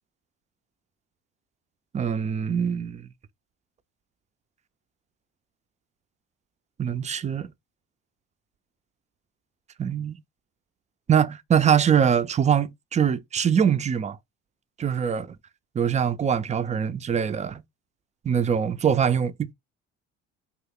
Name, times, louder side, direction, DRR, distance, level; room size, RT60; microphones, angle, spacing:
voice 1, 1.9-3.1 6.8-7.5 9.8-10.2 11.1-14.2 14.8-15.3 15.8-17.6 18.2-19.5, right 8 dB, 25° right, 0.3 m, -23 dB
2.8 x 2.4 x 3.5 m
supercardioid pair, 90°, 32 cm